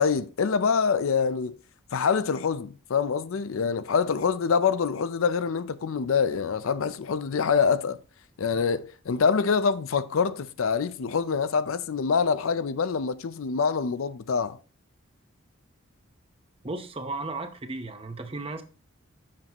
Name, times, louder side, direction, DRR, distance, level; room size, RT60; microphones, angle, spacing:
voice 1, 0.0-1.5 1.9-8.0 8.4-14.6, left 5 dB, 80° left, 0.5 m, -25 dB
voice 2, 16.6-18.6, right 2 dB, 25° right, 0.8 m, -35 dB
7.4 x 6.0 x 2.9 m
head